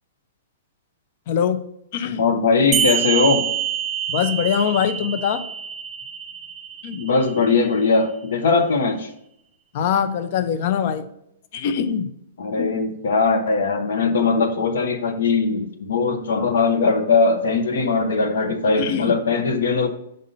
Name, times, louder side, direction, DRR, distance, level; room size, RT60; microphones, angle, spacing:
voice 1, 1.3-1.7 1.9-2.2 4.1-5.4 6.8-7.0 9.7-11.1 11.5-12.1 12.6-12.7 18.8-19.2, left 8 dB, 50° left, 11 dB, 0.6 m, -23 dB
voice 2, 2.2-3.4 7.0-9.1 12.4-19.9, left 4 dB, 70° left, 6 dB, 1.0 m, -20 dB
sound 1, 2.7-7.7, right 9 dB, 25° right, 0.5 m, -26 dB
5.3 x 3.8 x 5.4 m, 0.75 s
hypercardioid pair, 115°, 0 cm